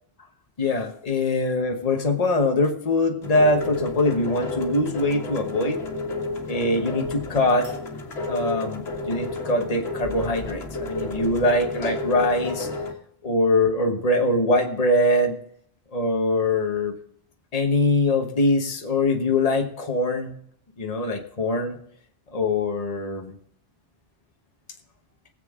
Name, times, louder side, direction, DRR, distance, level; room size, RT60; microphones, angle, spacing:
voice 1, 0.6-5.8 6.5-7.7 8.3-12.7 13.2-15.4 15.9-16.9 17.5-20.3 20.8-21.8 22.3-23.3, left 2 dB, 40° left, 3 dB, 1.3 m, -23 dB
sound 1, 3.2-12.9, left 2 dB, 85° left, 1.8 m, -31 dB
20.0 x 7.9 x 3.7 m, 0.67 s
omnidirectional pair, 1.0 m